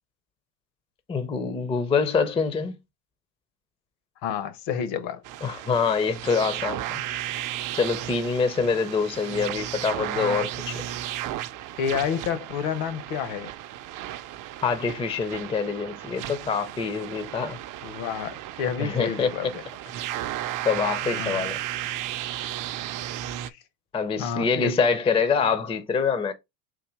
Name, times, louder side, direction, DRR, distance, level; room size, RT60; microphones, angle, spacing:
voice 1, 1.1-2.8 5.4-7.2 7.7-10.8 14.6-17.6 18.8-19.5 20.1-20.2 20.6-21.6 23.9-26.3, left 5 dB, 10° left, 0.5 m, -25 dB
voice 2, 4.2-5.2 10.2-10.5 11.8-13.5 17.8-19.6 21.2-21.4 23.5-23.6 24.2-24.8, left 7 dB, 60° left, 0.9 m, -29 dB
sound 1, 5.2-23.5, right 13 dB, 40° right, 0.5 m, -34 dB
3.9 x 2.7 x 4.6 m
hypercardioid pair, 90°, 49 cm